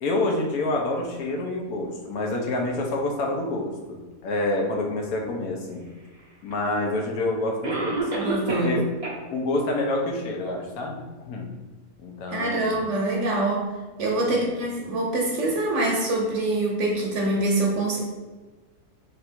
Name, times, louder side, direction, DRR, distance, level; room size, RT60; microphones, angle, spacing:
voice 1, 0.0-5.8 6.4-8.1 8.5-8.8 9.3-11.5 12.0-12.8 14.3-14.5, left 2 dB, 75° left, 0 dB, 1.2 m, -27 dB
Cough, 6.5-6.6 7.6-8.8 9.0-9.1 9.7-9.8 10.3-10.4, right 3 dB, 35° right, 0.6 m, -28 dB
voice 2, 8.2-8.8 12.3-13.7 14.0-18.1, right 2 dB, 60° right, -1 dB, 0.9 m, -25 dB
3.5 x 2.5 x 4.3 m, 1.3 s
omnidirectional pair, 1.6 m